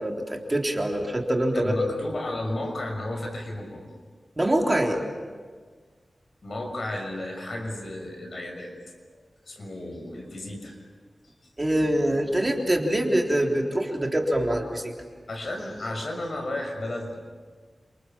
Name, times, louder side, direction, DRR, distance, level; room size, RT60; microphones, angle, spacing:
voice 1, 0.0-1.7 4.4-5.0 11.6-14.9, right 1 dB, 25° right, 1 dB, 3.6 m, -24 dB
voice 2, 1.5-3.8 6.4-8.7 9.5-10.8 15.3-17.2, left 1 dB, 55° left, 3 dB, 6.3 m, -33 dB
29.0 x 27.5 x 7.3 m, 1.5 s
wide cardioid pair, 80°, 0 cm